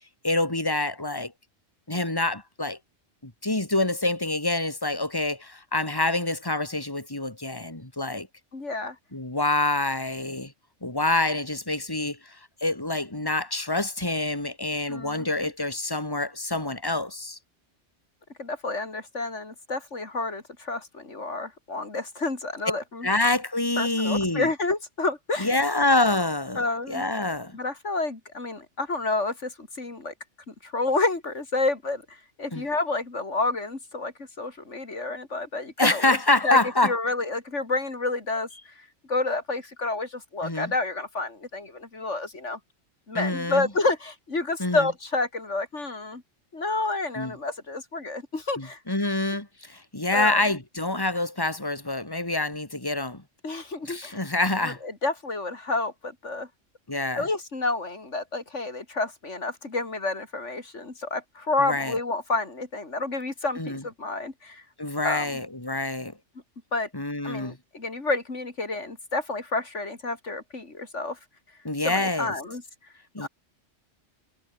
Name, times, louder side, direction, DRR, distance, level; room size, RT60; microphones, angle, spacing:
voice 1, 0.2-1.3 1.9-2.8 3.2-8.3 9.1-10.5 10.8-17.4 23.0-24.5 25.4-27.5 32.5-32.6 35.8-36.9 40.4-40.7 43.1-43.7 44.6-44.9 47.1-47.3 48.6-53.2 53.8-54.8 56.9-57.2 61.6-61.9 63.6-63.8 64.8-66.1 66.9-67.6 71.6-72.3 73.1-73.3, left 2 dB, 20° left, 3.3 m, -26 dB
voice 2, 8.5-9.0 14.9-15.5 18.4-23.1 23.8-25.5 26.6-27.1 27.5-30.1 30.5-36.2 36.4-42.6 43.1-46.2 46.5-48.8 50.1-50.4 53.4-54.3 54.6-56.5 57.2-64.6 65.0-65.4 66.7-66.9 67.2-71.2 71.8-72.6 73.2-73.3, left 3 dB, 70° left, 3.7 m, -29 dB
omnidirectional pair, 1.3 m